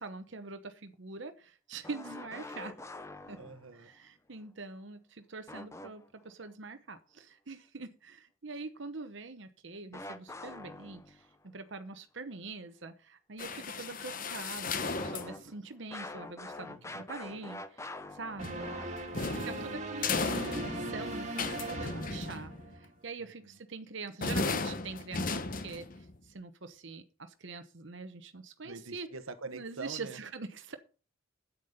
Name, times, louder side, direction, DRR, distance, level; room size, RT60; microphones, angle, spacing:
voice 1, 0.0-2.8 3.3-3.4 3.7-11.3 11.5-19.0 19.3-29.1 29.5-30.7, right 4 dB, 60° right, 1.0 m, -44 dB
sound 1, 1.8-3.8 5.5-6.3 9.9-11.4 15.0-19.3, left 2 dB, 15° left, 0.7 m, -45 dB
voice 2, 3.4-3.9 16.7-17.0 19.6-19.8 23.2-23.3 28.6-30.2, right 3 dB, 80° right, 1.1 m, -45 dB
sound 2, 13.4-15.4 18.4-22.9 24.2-26.2, left 3 dB, 40° left, 1.0 m, -35 dB
sound 3, 18.4-22.9, right 1 dB, 35° right, 2.2 m, -39 dB
9.6 x 8.4 x 5.2 m
head